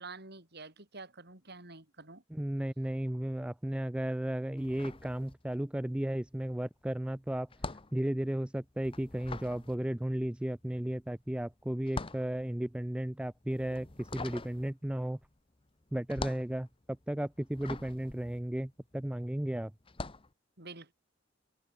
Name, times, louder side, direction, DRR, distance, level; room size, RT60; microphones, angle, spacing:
voice 1, 0.0-2.2 20.6-20.9, right 3 dB, 60° right, 6.2 m, -48 dB
voice 2, 2.3-7.5 7.9-15.2 15.9-16.7 17.1-19.7, right 1 dB, 5° right, 0.3 m, -34 dB
sound 1, 4.6-5.8 6.1-19.3 19.8-20.3, left 3 dB, 30° left, 1.2 m, -44 dB
head